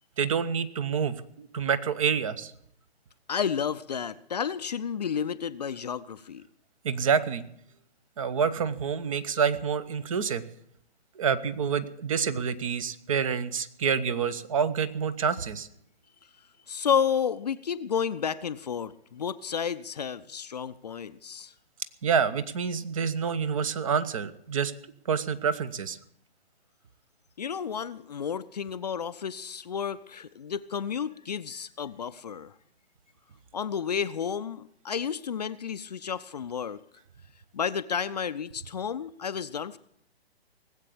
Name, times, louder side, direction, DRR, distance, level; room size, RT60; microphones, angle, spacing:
voice 1, 0.2-2.5 6.8-7.4 8.2-10.4 11.2-15.7 22.0-24.7 25.1-26.0, right 6 dB, 30° right, 15 dB, 0.9 m, -27 dB
voice 2, 3.3-6.4 16.7-21.5 27.4-32.5 33.5-36.8 37.5-39.8, left 7 dB, 40° left, 13 dB, 0.6 m, -31 dB
19.0 x 8.2 x 8.5 m, 0.71 s
figure-of-eight pair, 135°, 32 cm